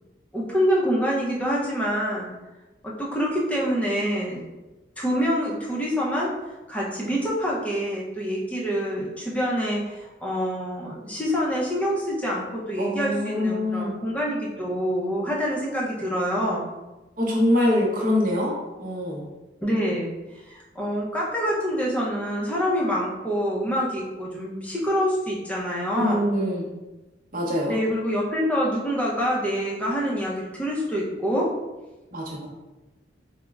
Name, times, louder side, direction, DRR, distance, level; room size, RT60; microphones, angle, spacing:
voice 1, 0.3-2.3 2.8-4.4 5.0-6.3 6.7-16.7 19.6-20.1 20.4-26.3 27.7-31.5, equal, 5° left, -5 dB, 0.5 m, -26 dB
voice 2, 12.8-13.9 17.2-18.5 18.8-19.2 25.9-26.7 27.3-27.7 32.1-32.5, left 1 dB, 45° right, -3 dB, 0.7 m, -24 dB
4.9 x 2.0 x 2.3 m, 1.1 s
head